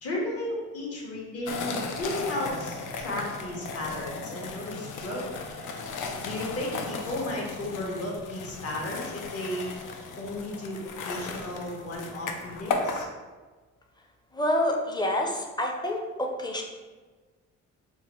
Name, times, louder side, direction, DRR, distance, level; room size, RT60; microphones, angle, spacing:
voice 1, 0.0-5.3 6.2-9.7 10.2-13.1, left 1 dB, 45° left, -3 dB, 1.1 m, -34 dB
sound 1, 1.5-13.0, left 4 dB, 70° left, 0.5 m, -36 dB
voice 2, 14.3-16.6, left 1 dB, 15° left, 2 dB, 0.6 m, -27 dB
3.6 x 2.2 x 3.0 m, 1.3 s
supercardioid pair, 55°, 33 cm